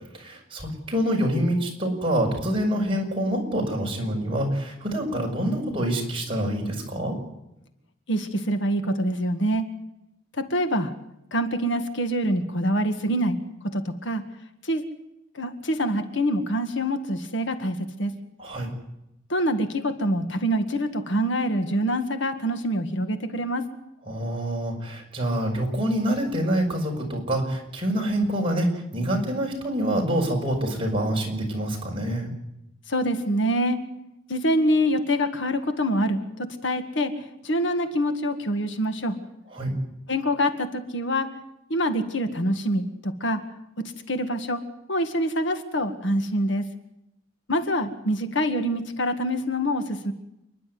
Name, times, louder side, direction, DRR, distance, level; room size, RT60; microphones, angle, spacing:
voice 1, 0.1-7.1 18.4-18.7 24.1-32.3 39.5-39.7, right 1 dB, 30° right, 0 dB, 6.1 m, -26 dB
voice 2, 8.1-9.7 10.4-10.9 11.3-13.4 13.6-14.2 14.6-14.9 15.3-18.2 19.3-23.7 32.9-33.8 34.3-39.2 40.1-41.3 41.7-43.4 43.8-44.6 44.9-46.6 47.5-50.1, equal, 65° left, 8 dB, 1.9 m, -25 dB
28.5 x 11.5 x 9.6 m, 0.86 s
head